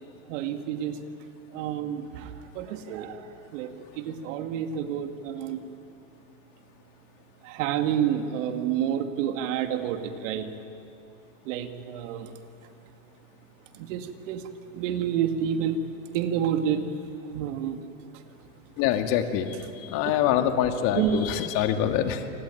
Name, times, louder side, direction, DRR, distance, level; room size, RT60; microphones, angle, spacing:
voice 1, 0.3-1.0 1.5-5.6 7.4-10.6 11.4-12.3 13.7-14.4 14.7-15.9 16.1-16.9 17.3-17.8 20.0-20.1 21.0-21.2, right 9 dB, 70° right, 7 dB, 2.1 m, -29 dB
voice 2, 18.8-22.3, left 10 dB, 55° left, 6 dB, 2.2 m, -25 dB
27.0 x 18.0 x 9.2 m, 2.7 s
supercardioid pair, 120°, 40 cm